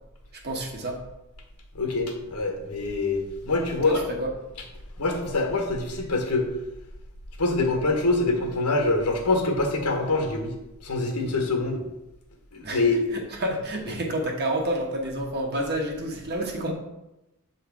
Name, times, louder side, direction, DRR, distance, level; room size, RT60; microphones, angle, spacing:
voice 1, 0.3-1.0 3.8-4.3 12.6-12.8 13.1-16.7, right 1 dB, 45° right, 0 dB, 1.2 m, -29 dB
voice 2, 1.7-4.0 5.0-6.5 7.4-10.5 10.8-11.8 12.5-13.0, left 2 dB, 85° left, 3 dB, 1.2 m, -25 dB
7.1 x 3.2 x 4.7 m, 0.94 s
head